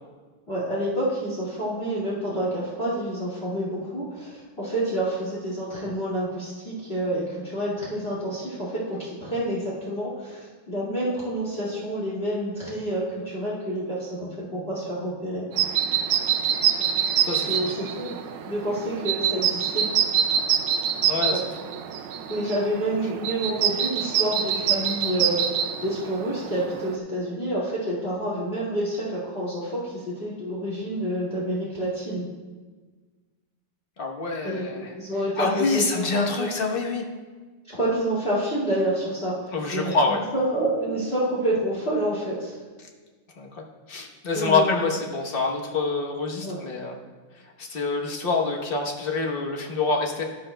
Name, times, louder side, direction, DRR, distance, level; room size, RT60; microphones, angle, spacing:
voice 1, 0.5-15.5 17.5-18.2 18.4-19.9 21.3-21.4 22.3-32.3 34.4-36.5 37.7-42.6 44.3-44.7 46.4-46.6, right 1 dB, 25° left, -7 dB, 2.3 m, -28 dB
sound 1, 15.5-27.0, right 9 dB, 75° right, 1.4 m, -26 dB
voice 2, 17.2-17.7 21.1-21.4 34.0-34.9 35.4-37.0 39.5-40.2 43.4-43.5 43.9-47.0 47.6-50.3, left 3 dB, 45° left, 0 dB, 0.7 m, -26 dB
12.0 x 11.5 x 2.2 m, 1.4 s
omnidirectional pair, 2.4 m